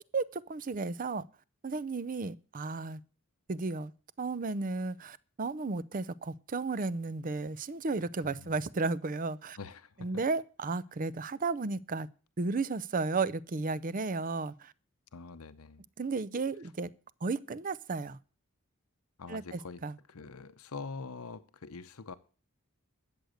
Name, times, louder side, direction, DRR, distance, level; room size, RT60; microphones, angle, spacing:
voice 1, 0.1-1.2 1.6-3.0 3.5-3.9 4.2-9.6 10.0-12.1 12.4-14.7 16.0-16.9 17.2-18.2 19.3-19.9, right 3 dB, 35° right, 0.5 m, -33 dB
voice 2, 8.2-8.6 9.5-10.2 15.1-15.8 19.2-19.8 20.1-22.2, left 4 dB, 80° left, 0.8 m, -44 dB
13.0 x 8.0 x 6.4 m
head